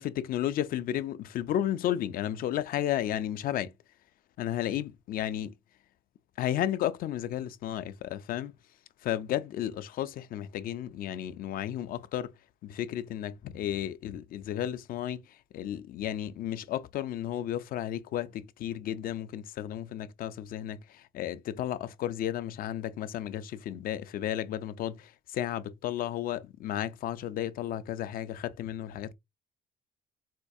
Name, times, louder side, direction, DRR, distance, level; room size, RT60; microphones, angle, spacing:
voice 1, 0.0-3.7 4.4-5.5 6.4-8.6 9.0-12.3 12.6-29.1, left 11 dB, 60° left, 0.4 m, -33 dB
4.3 x 2.3 x 2.6 m
cardioid pair, 110°, 17 cm